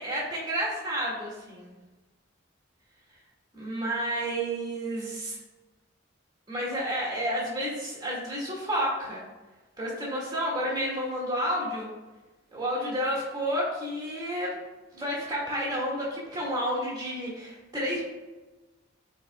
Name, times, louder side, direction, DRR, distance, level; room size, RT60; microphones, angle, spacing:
voice 1, 0.0-1.8 3.5-5.4 6.5-9.2 9.8-11.9 12.5-14.5 14.9-18.0, equal, 20° right, -6 dB, 2.1 m, -30 dB
10.5 x 4.3 x 2.3 m, 1.2 s
head